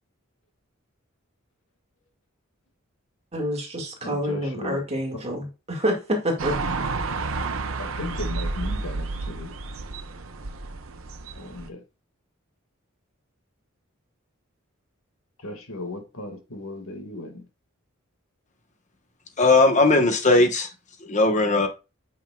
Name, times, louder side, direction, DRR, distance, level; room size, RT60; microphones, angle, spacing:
voice 1, 3.3-6.6, equal, 30° right, 2.1 m, -27 dB
voice 2, 4.0-4.8 5.1-5.2 7.8-9.5 11.4-11.8 15.4-17.4, left 2 dB, 85° left, 2.0 m, -36 dB
sound 1, 6.4-11.7, right 3 dB, 75° right, 0.8 m, -31 dB
voice 3, 19.4-20.7 21.0-21.7, left 2 dB, 35° left, 1.2 m, -18 dB
8.9 x 5.6 x 2.4 m
head